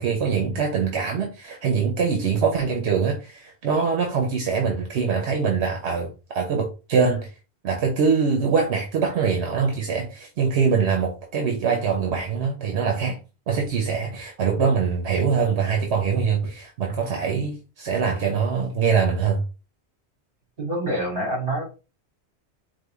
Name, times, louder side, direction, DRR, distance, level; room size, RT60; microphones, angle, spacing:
voice 1, 0.0-7.3 7.6-13.2 13.5-19.4, right 5 dB, 80° right, 1.0 m, -23 dB
voice 2, 20.6-21.6, right 1 dB, 50° right, 2.4 m, -27 dB
4.6 x 2.5 x 3.5 m
omnidirectional pair, 1.1 m